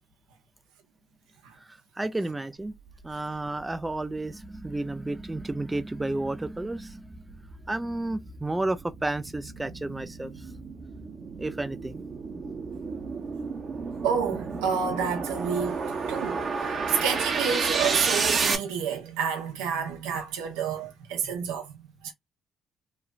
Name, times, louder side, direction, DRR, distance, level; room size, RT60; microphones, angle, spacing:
voice 1, 1.7-2.7 3.0-7.4 7.7-10.3 11.4-12.0, right 2 dB, 15° right, 0.4 m, -32 dB
sound 1, 3.8-3.9 4.4-18.6, right 4 dB, 50° right, 0.8 m, -31 dB
voice 2, 14.0-15.8 16.1-22.1, right 7 dB, 90° right, 0.7 m, -29 dB
3.1 x 2.3 x 2.3 m
supercardioid pair, 60°, 0 cm